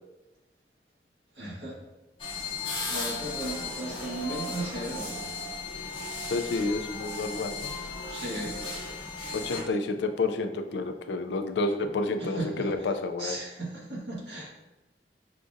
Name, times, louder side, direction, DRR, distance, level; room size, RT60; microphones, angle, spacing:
voice 1, 1.3-1.8 2.8-5.4 8.1-8.6 12.2-12.9 13.2-14.5, right 1 dB, 75° right, -5 dB, 1.3 m, -36 dB
sound 1, 2.2-9.6, left 3 dB, 30° left, 0.8 m, -36 dB
voice 2, 6.3-7.7 9.3-13.4, left 3 dB, 85° left, 7 dB, 0.4 m, -30 dB
5.8 x 2.5 x 2.5 m, 1.0 s
head